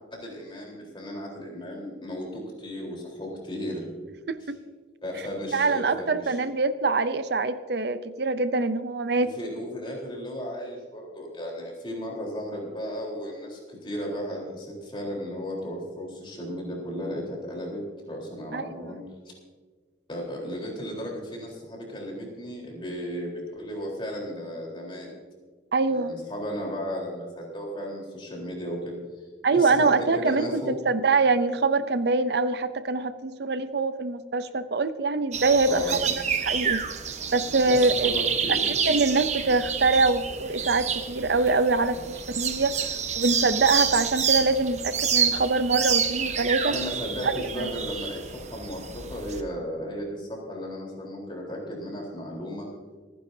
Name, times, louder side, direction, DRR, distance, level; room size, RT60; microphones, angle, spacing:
voice 1, 0.1-3.8 4.4-4.5 5.0-6.4 9.2-19.0 20.1-25.1 25.9-29.0 29.5-30.7 35.7-36.1 37.6-38.6 46.7-48.2 48.5-52.7, equal, 25° left, -2 dB, 3.9 m, -35 dB
voice 2, 5.5-9.3 18.5-19.0 25.7-26.2 29.4-36.8 37.3-38.1 38.9-42.7 43.2-46.7 47.2-47.7, right 3 dB, 60° right, 12 dB, 0.6 m, -24 dB
sound 1, 35.3-49.4, right 7 dB, 35° right, 1.0 m, -28 dB
26.5 x 10.0 x 2.7 m, 1.5 s
head